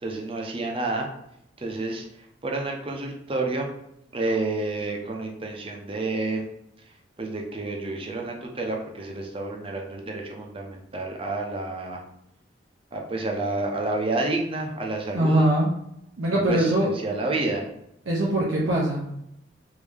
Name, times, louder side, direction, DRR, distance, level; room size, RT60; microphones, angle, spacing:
voice 1, 0.0-1.1 1.6-2.0 2.4-3.7 4.1-6.4 7.2-12.0 12.9-15.5 16.5-17.7, right 2 dB, 30° right, 1 dB, 0.6 m, -29 dB
voice 2, 15.1-15.7 16.2-16.9 18.1-19.1, right 1 dB, 85° right, -4 dB, 0.7 m, -22 dB
3.5 x 2.6 x 3.3 m, 0.79 s
head